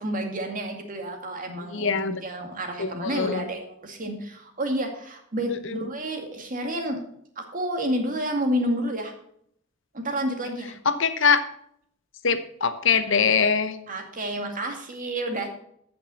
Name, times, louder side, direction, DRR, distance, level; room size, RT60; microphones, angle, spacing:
voice 1, 0.0-7.0 7.4-9.1 9.9-10.7 13.9-15.5, right 1 dB, 45° right, 4 dB, 2.2 m, -30 dB
voice 2, 1.7-2.2 2.8-3.4 10.8-11.4 12.2-13.8, left 6 dB, 70° left, 10 dB, 1.0 m, -22 dB
15.0 x 6.1 x 4.2 m, 0.68 s
head